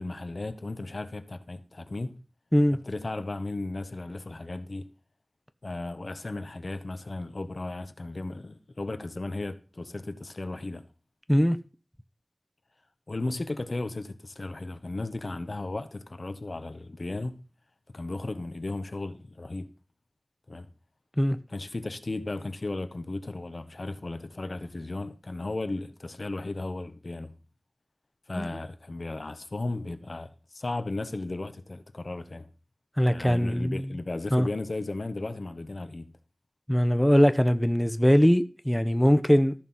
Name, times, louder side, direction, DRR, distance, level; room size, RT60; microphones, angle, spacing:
voice 1, 0.0-2.2 2.8-4.9 5.6-10.8 13.1-17.4 17.9-19.7 20.5-20.7 21.5-27.4 28.3-32.5 33.1-36.2, left 2 dB, 70° left, 1.1 m, -35 dB
voice 2, 33.0-33.9 34.3-34.5 36.7-39.5, equal, 5° left, 0.9 m, -21 dB
14.0 x 6.0 x 5.6 m
wide cardioid pair, 45°, 0 cm